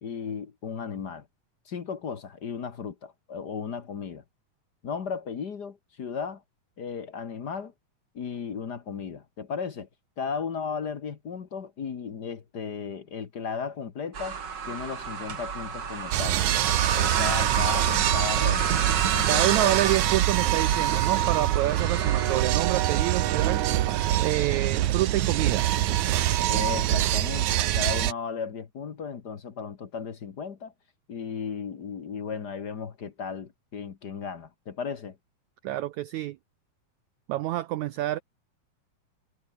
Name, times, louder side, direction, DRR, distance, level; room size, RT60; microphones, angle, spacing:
voice 1, 0.0-1.3 1.6-4.2 4.8-6.4 6.8-7.7 8.1-9.9 10.2-14.4 14.7-16.4 16.9-18.8 19.1-19.7 26.5-30.7 31.1-35.1, left 6 dB, 50° left, 1.2 m, -35 dB
sound 1, 14.1-22.4, right 6 dB, 35° right, 2.1 m, -30 dB
sound 2, 16.1-28.1, right 13 dB, 70° right, 2.2 m, -25 dB
voice 2, 19.3-23.7 24.2-25.6 35.6-36.4 37.3-38.2, right 15 dB, 85° right, 1.6 m, -28 dB
omnidirectional pair, 4.1 m